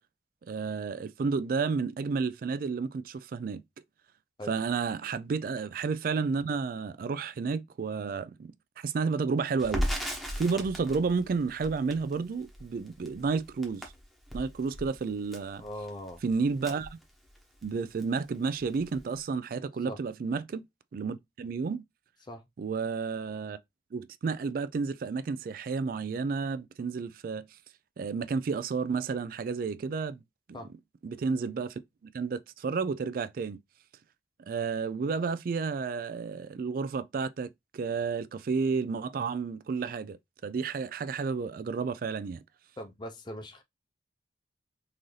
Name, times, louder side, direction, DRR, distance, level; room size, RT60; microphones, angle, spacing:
voice 1, 0.5-3.6 4.5-13.9 14.3-15.6 16.2-17.0 17.6-20.7 20.9-21.8 22.6-23.6 23.9-27.4 28.0-30.2 30.5-30.6 31.0-31.8 32.1-33.6 34.5-40.2 40.4-42.4, right 5 dB, 50° right, 0.3 m, -31 dB
Crackle, 9.6-17.7 18.0-18.1 18.4-19.2, equal, ahead, 0.9 m, -37 dB
voice 2, 15.6-16.2 19.9-20.0 22.2-22.5 30.5-30.7 42.8-43.6, left 1 dB, 25° left, 0.6 m, -41 dB
3.8 x 2.6 x 3.1 m
head